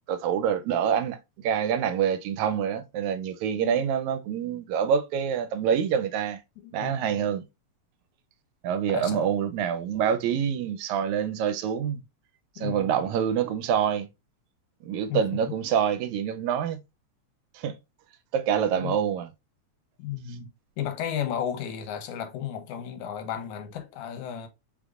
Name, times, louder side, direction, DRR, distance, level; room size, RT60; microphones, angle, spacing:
voice 1, 0.1-1.2 1.4-6.4 6.7-7.4 8.6-12.0 12.6-14.1 14.8-16.8 17.6-17.8 18.3-19.3, right 8 dB, 80° right, 1.9 m, -26 dB
voice 2, 6.6-7.2 8.9-9.3 12.6-13.1 15.1-15.5 18.8-19.0 20.0-24.5, left 9 dB, 90° left, 2.3 m, -34 dB
5.0 x 3.5 x 2.4 m
omnidirectional pair, 3.3 m